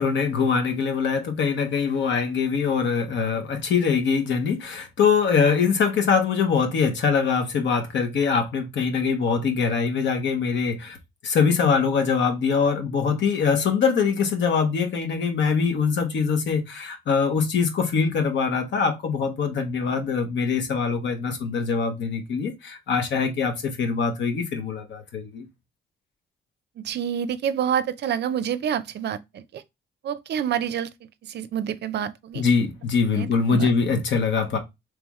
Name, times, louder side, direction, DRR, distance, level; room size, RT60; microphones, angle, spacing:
voice 1, 0.0-11.0 11.2-25.4 32.3-34.6, left 5 dB, 65° left, 1.1 m, -23 dB
voice 2, 26.8-29.6 30.0-30.9 31.3-32.4 33.2-33.7, right 9 dB, 60° right, 0.5 m, -28 dB
3.5 x 3.3 x 3.0 m
cardioid pair, 90°, 20 cm